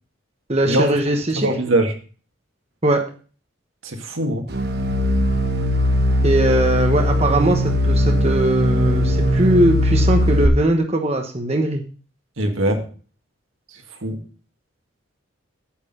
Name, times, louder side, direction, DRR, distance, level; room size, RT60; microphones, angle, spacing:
voice 1, 0.5-1.5 2.8-3.1 6.2-11.8, right 1 dB, 30° right, 3 dB, 1.1 m, -20 dB
voice 2, 1.4-2.0 3.8-4.5 12.4-12.9 14.0-14.2, right 1 dB, 80° right, 4 dB, 2.0 m, -21 dB
sound 1, 4.5-10.5, equal, 50° right, 1.3 m, -19 dB
8.6 x 8.0 x 5.4 m, 0.39 s
head